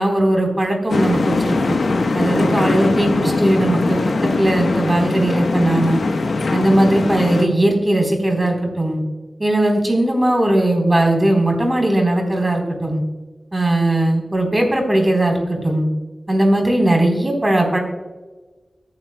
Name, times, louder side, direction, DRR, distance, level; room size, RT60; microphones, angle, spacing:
voice 1, 0.0-1.8 2.1-6.0 6.5-9.0 9.4-13.0 13.5-15.9 16.3-17.8, right 1 dB, 25° right, 2 dB, 3.8 m, -18 dB
sound 1, 0.9-7.5, left 3 dB, 80° left, 1.1 m, -20 dB
23.0 x 9.7 x 2.2 m, 1.3 s
wide cardioid pair, 65°, 0 cm